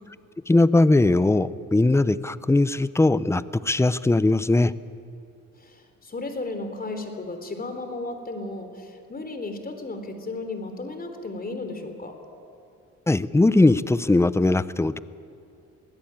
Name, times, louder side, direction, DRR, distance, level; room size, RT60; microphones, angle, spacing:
voice 1, 0.5-4.7 13.1-15.0, left 2 dB, 10° left, 16 dB, 0.6 m, -20 dB
voice 2, 5.6-12.2, left 2 dB, 30° left, 7 dB, 3.5 m, -34 dB
22.5 x 16.5 x 8.9 m, 2.5 s
cardioid pair, 90°, 30 cm